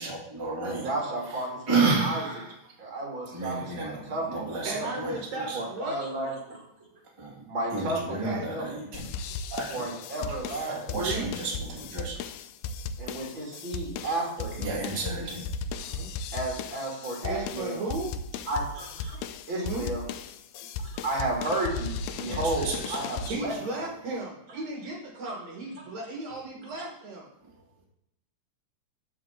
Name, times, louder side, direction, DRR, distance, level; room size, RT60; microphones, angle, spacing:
voice 1, 0.0-0.9 1.3-1.4 1.7-2.5 3.3-5.6 7.2-7.4 7.7-9.1 9.5-9.9 10.6-12.2 14.6-15.4 22.2-23.4, right 3 dB, 10° right, -4 dB, 1.8 m, -31 dB
voice 2, 0.6-2.2 2.8-4.9 5.5-6.6 7.5-8.7 9.7-11.2 13.0-14.7 16.3-17.8 18.5-19.2 19.5-20.0 20.8-23.9 26.8-26.9, right 2 dB, 40° right, -2 dB, 3.0 m, -33 dB
voice 3, 4.6-6.0 8.1-8.5 10.9-11.3 15.8-16.1 17.2-18.1 19.5-19.9 23.3-27.3, right 2 dB, 60° right, -1 dB, 2.6 m, -35 dB
sound 1, 8.9-23.3, left 5 dB, 80° left, 1.8 m, -36 dB
14.5 x 5.4 x 3.7 m, 0.86 s
omnidirectional pair, 3.8 m